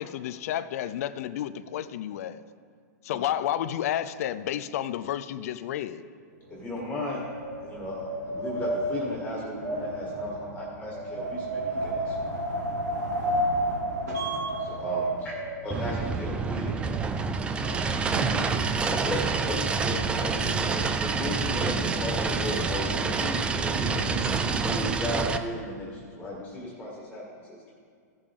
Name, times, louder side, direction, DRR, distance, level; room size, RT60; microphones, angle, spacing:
voice 1, 0.0-2.4 3.0-6.0, left 11 dB, 55° left, 13 dB, 0.5 m, -31 dB
voice 2, 6.5-7.3 7.6-12.3 14.6-15.3 15.6-16.7 17.5-18.1 18.9-24.0 24.4-27.6, left 1 dB, 10° left, -4 dB, 1.9 m, -36 dB
Wind, 6.5-15.7, right 1 dB, 85° right, 2.0 m, -31 dB
voice 3, 14.1-14.6 17.9-18.8 19.9-20.0 20.3-20.6 23.7-23.9, right 4 dB, 60° right, 0 dB, 2.3 m, -34 dB
sound 1, 15.7-25.4, right 4 dB, 10° right, 0.3 m, -27 dB
15.5 x 6.8 x 3.6 m, 2.2 s
hypercardioid pair, 150°, 10 cm